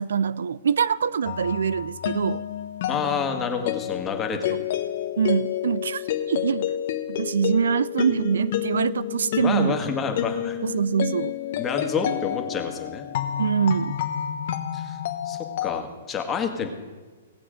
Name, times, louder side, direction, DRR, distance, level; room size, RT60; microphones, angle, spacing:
voice 1, 0.0-2.4 4.5-4.6 5.2-6.7 7.1-9.8 10.6-11.4 13.4-14.0, right 7 dB, 75° right, 0.3 m, -24 dB
sound 1, 1.2-15.8, left 11 dB, 55° left, 1.1 m, -30 dB
voice 2, 2.9-4.6 9.4-10.6 11.6-13.0 14.7-15.0 15.2-16.7, left 5 dB, 20° left, 1.7 m, -28 dB
18.0 x 7.7 x 5.1 m
hypercardioid pair, 120°, 0 cm